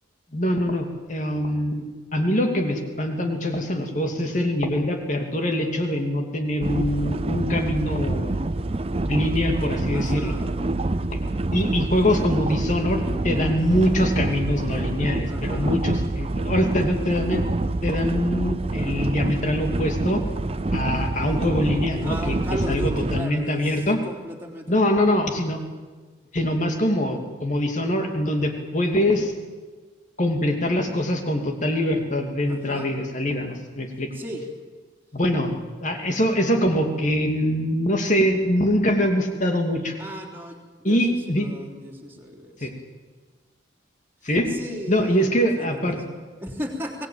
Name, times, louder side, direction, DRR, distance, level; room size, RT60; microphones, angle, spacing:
voice 1, 0.3-1.8 2.1-8.4 9.1-10.3 11.1-11.2 11.5-17.5 17.8-20.2 20.7-24.0 24.7-25.6 26.3-29.3 30.2-34.1 35.1-35.5 35.8-40.0 40.8-41.5 42.6-42.7 44.2-44.5 44.9-46.0, equal, 40° left, 4 dB, 2.7 m, -23 dB
sound 1, 6.6-23.2, right 2 dB, 30° right, 0.6 m, -26 dB
voice 2, 9.9-10.5 15.3-15.8 22.0-24.8 32.5-32.9 34.1-34.5 40.0-42.7 44.2-47.1, equal, 10° right, 0 dB, 3.4 m, -36 dB
23.0 x 18.5 x 8.9 m, 1.4 s
head